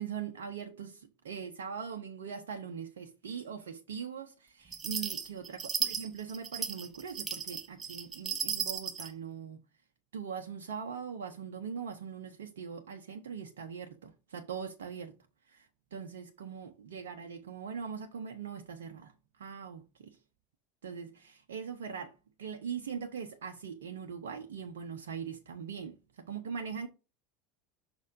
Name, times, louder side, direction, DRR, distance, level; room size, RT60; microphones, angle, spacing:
voice 1, 0.0-9.6 10.1-15.1 15.5-19.1 19.4-20.2 20.8-22.1 22.4-26.9, right 7 dB, 70° right, 0.8 m, -41 dB
sound 1, 4.7-9.1, right 6 dB, 20° right, 1.3 m, -35 dB
6.3 x 6.1 x 2.6 m
figure-of-eight pair, 75°, 0 cm